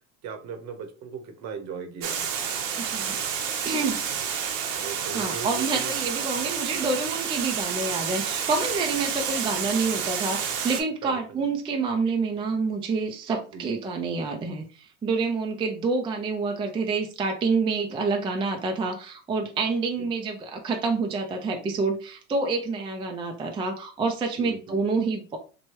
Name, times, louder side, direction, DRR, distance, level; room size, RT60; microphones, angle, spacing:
voice 1, 0.2-2.4 4.8-5.9 11.0-11.4 13.5-13.7 20.0-20.1 24.4-24.8, right 6 dB, 45° right, 6 dB, 0.8 m, -38 dB
Water, 2.0-10.8, right 7 dB, 80° right, 0.8 m, -29 dB
voice 2, 2.8-3.2 3.6-4.0 5.1-25.4, right 4 dB, 15° right, 3 dB, 0.4 m, -28 dB
2.9 x 2.2 x 2.9 m, 0.38 s
hypercardioid pair, 85°, 37 cm